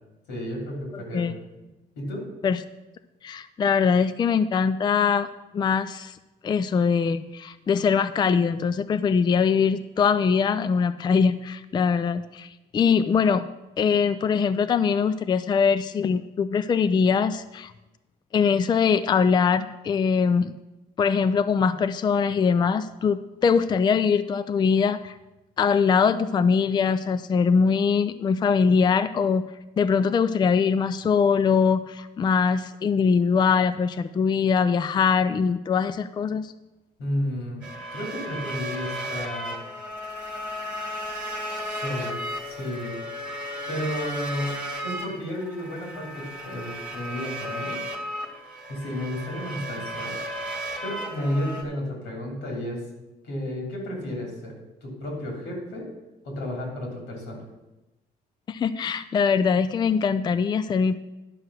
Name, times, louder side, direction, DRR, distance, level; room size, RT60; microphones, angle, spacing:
voice 1, 0.3-1.3 2.0-2.2 37.0-39.6 41.6-43.0 43.7-44.5 44.8-47.8 48.7-50.2 50.8-52.8 53.2-54.6 54.8-55.9 56.2-57.4, equal, 90° left, 0 dB, 3.3 m, -32 dB
voice 2, 0.9-1.4 2.4-2.6 3.2-5.3 5.5-6.2 6.4-13.5 13.8-17.7 18.3-20.5 21.0-25.2 25.6-29.4 29.8-36.5 58.5-61.0, left 6 dB, 25° left, 13 dB, 0.4 m, -22 dB
sound 1, 37.6-51.6, equal, 5° right, 1.6 m, -34 dB
11.0 x 4.7 x 6.4 m, 1.0 s
cardioid pair, 110°, 17 cm